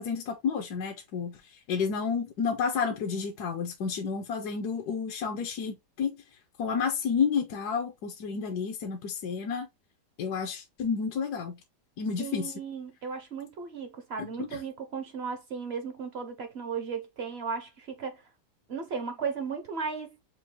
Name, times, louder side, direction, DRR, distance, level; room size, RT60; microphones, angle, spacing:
voice 1, 0.0-6.2 6.6-9.7 10.2-11.6 12.0-12.5 14.4-14.6, left 6 dB, 70° left, 1.2 m, -31 dB
voice 2, 12.2-18.3 18.7-20.2, right 5 dB, 60° right, 0.7 m, -35 dB
6.0 x 2.3 x 3.0 m
omnidirectional pair, 1.9 m